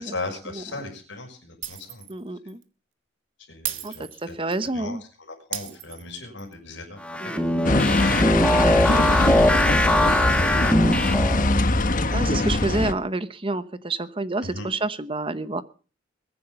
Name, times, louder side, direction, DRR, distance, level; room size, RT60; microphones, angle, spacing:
voice 1, 0.0-2.1 3.5-4.4 4.7-7.3 9.3-9.6 12.4-12.5 14.4-14.7, left 2 dB, 70° left, 1 dB, 5.9 m, -37 dB
Shatter, 1.6-2.2 2.5-2.6 3.6-4.7 5.5-6.5, right 12 dB, 75° right, 1.6 m, -35 dB
voice 2, 2.1-2.6 3.8-5.0 7.2-7.7 8.5-8.8 10.5-10.7 12.1-15.6, right 2 dB, 25° right, 13 dB, 1.0 m, -29 dB
sound 1, 7.0-11.5, left 1 dB, 5° left, 1.5 m, -21 dB
sound 2, 7.6-12.9, left 2 dB, 45° left, 1.3 m, -22 dB
22.0 x 10.0 x 5.5 m, 0.39 s
head